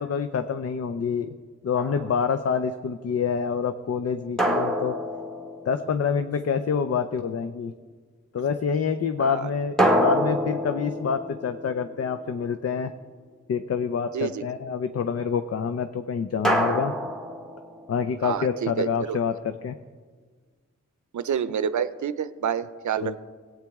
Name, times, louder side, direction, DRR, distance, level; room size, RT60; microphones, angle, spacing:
voice 1, 0.0-1.4 1.6-5.0 5.7-7.7 8.3-12.9 13.5-16.9 17.9-19.7 23.0-23.2, left 6 dB, 55° left, 10 dB, 0.6 m, -27 dB
sound 1, 1.8-2.3 4.4-6.2 9.8-12.4 16.4-18.1, equal, ahead, 1.5 m, -26 dB
voice 2, 9.2-9.5 14.1-14.4 18.2-19.2 21.1-23.2, right 8 dB, 80° right, 14 dB, 0.6 m, -28 dB
17.0 x 8.9 x 3.6 m, 1.5 s
cardioid pair, 60°, 29 cm